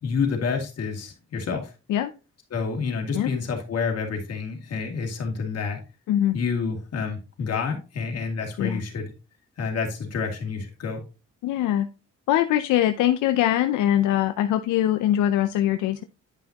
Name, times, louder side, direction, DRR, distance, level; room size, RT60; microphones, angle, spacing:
voice 1, 0.0-1.7 2.5-5.8 6.3-9.1 9.6-11.0, left 5 dB, 55° left, 3 dB, 2.4 m, -28 dB
voice 2, 11.4-11.9 12.3-16.0, left 12 dB, 85° left, 9 dB, 0.6 m, -22 dB
10.0 x 5.7 x 2.9 m, 0.30 s
cardioid pair, 90°, 30 cm